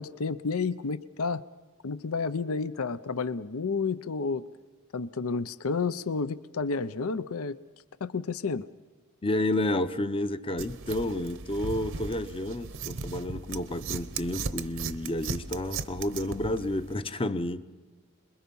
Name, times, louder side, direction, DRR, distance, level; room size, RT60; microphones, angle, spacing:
voice 1, 0.0-1.4 1.8-4.4 4.9-7.6 8.0-8.7, left 4 dB, 70° left, 0.6 m, -31 dB
voice 2, 9.2-17.6, left 1 dB, 25° left, 0.8 m, -30 dB
sound 1, 10.6-16.9, right 4 dB, 60° right, 0.9 m, -37 dB
26.5 x 21.5 x 5.5 m
head